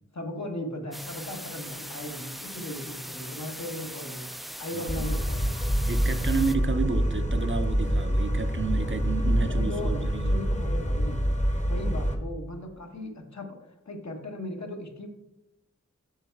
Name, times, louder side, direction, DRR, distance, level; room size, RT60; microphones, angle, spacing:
voice 1, 0.1-4.3 4.6-5.6 8.8-11.2 11.7-15.1, left 1 dB, 70° left, 1.3 m, -37 dB
sound 1, 0.9-6.6, equal, ahead, 0.4 m, -40 dB
sound 2, 4.9-12.2, equal, 25° left, 0.9 m, -26 dB
voice 2, 5.9-10.4, right 4 dB, 40° right, 0.6 m, -31 dB
7.2 x 5.6 x 4.6 m
wide cardioid pair, 55°, 29 cm